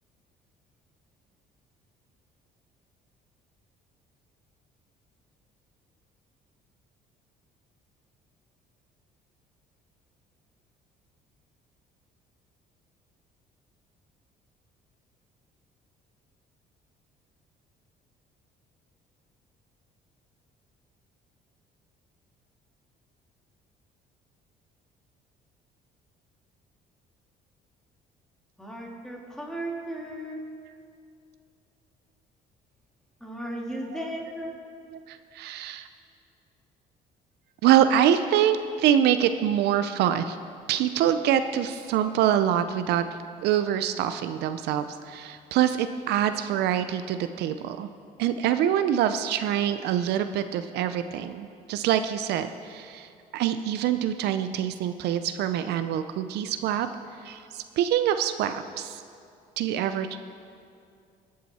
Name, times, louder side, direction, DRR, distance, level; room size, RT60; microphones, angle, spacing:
voice 1, 28.6-30.4 33.2-34.5, right 1 dB, 5° left, -2 dB, 2.3 m, -35 dB
voice 2, 34.9-35.9 37.6-40.4 40.7-43.1 43.4-47.9 48.2-56.9 57.2-59.0 59.6-60.2, right 10 dB, 80° right, 10 dB, 0.5 m, -25 dB
19.5 x 7.5 x 4.2 m, 2.5 s
cardioid pair, 110°, 17 cm